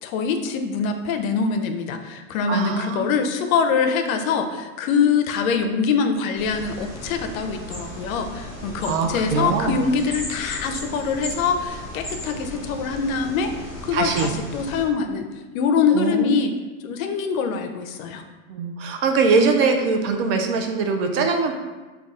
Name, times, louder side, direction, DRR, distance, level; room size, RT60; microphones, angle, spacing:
voice 1, 0.0-13.5 13.8-15.3 15.5-16.5 16.8-18.2, left 5 dB, 70° left, 7 dB, 0.6 m, -24 dB
voice 2, 2.5-3.1 8.8-9.8 13.9-14.3 15.9-16.4 18.5-21.5, right 4 dB, 45° right, 4 dB, 0.4 m, -22 dB
sound 1, 6.3-14.8, left 1 dB, 5° right, 0.8 m, -36 dB
4.0 x 2.3 x 3.5 m, 1.2 s
supercardioid pair, 140°, 43 cm